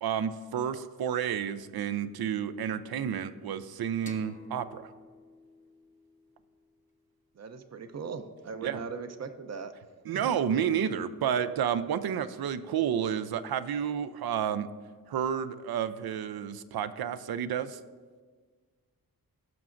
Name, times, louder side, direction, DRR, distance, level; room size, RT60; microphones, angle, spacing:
voice 1, 0.0-4.9 8.6-8.8 10.1-14.7 15.1-17.8, right 8 dB, 90° right, 12 dB, 0.5 m, -30 dB
sound 1, 4.1-7.4, left 3 dB, 20° left, 0.7 m, -53 dB
voice 2, 7.3-9.7 10.1-10.3, right 5 dB, 45° right, 9 dB, 0.6 m, -39 dB
18.0 x 6.1 x 2.6 m, 1.5 s
wide cardioid pair, 170°, 36 cm